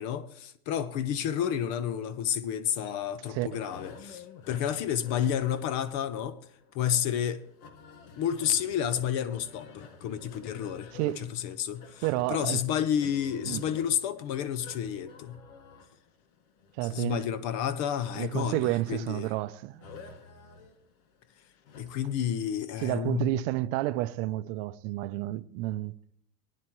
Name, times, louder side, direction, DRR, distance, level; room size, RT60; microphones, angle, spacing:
voice 1, 0.0-6.4 6.7-7.4 8.2-12.0 12.3-15.4 16.9-19.3 21.8-23.4, left 9 dB, 40° left, 0.6 m, -30 dB
voice 2, 3.3-3.6 10.9-11.3 12.0-12.6 13.5-13.7 16.8-17.2 18.2-19.9 22.8-25.9, right 17 dB, 50° right, 0.6 m, -30 dB
sound 1, 3.5-22.2, left 5 dB, 75° left, 1.7 m, -51 dB
19.0 x 10.0 x 3.1 m
supercardioid pair, 150°, 44 cm